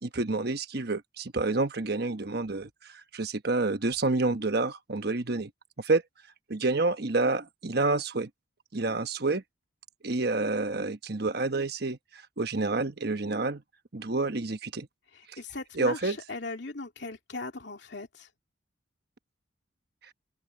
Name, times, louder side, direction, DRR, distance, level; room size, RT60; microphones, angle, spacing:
voice 1, 0.0-2.7 3.1-5.5 5.8-6.0 6.5-8.3 8.7-9.4 10.0-12.0 12.4-13.6 13.9-14.9 15.7-16.2, right 3 dB, 55° right, 1.1 m, -28 dB
voice 2, 15.1-18.3, left 3 dB, 60° left, 2.8 m, -39 dB
open air
head